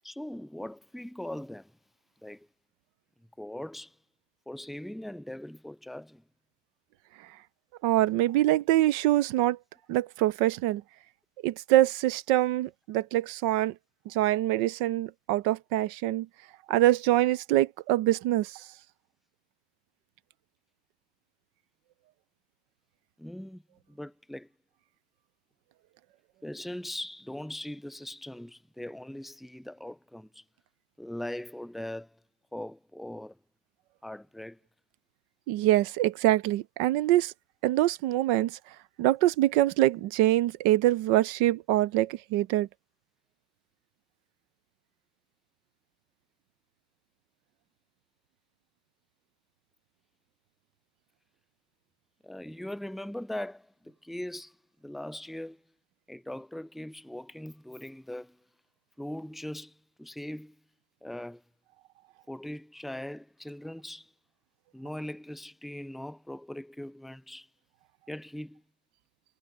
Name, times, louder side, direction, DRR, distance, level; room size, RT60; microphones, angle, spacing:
voice 1, 0.0-1.7 2.2-2.5 3.4-4.0 4.5-6.2 23.2-23.6 23.9-24.5 26.4-30.4 31.0-32.2 32.5-33.4 34.0-34.6 52.2-54.6 54.8-55.6 56.1-58.4 59.0-60.6 61.0-61.4 62.3-64.1 64.7-67.5 68.1-68.6, left 1 dB, ahead, 4.3 m, -40 dB
voice 2, 7.8-9.6 9.9-10.8 11.4-13.7 14.1-16.3 16.7-18.5 35.5-37.3 37.6-38.5 39.0-42.7, right 15 dB, 90° right, 1.3 m, -24 dB
omnidirectional pair, 1.9 m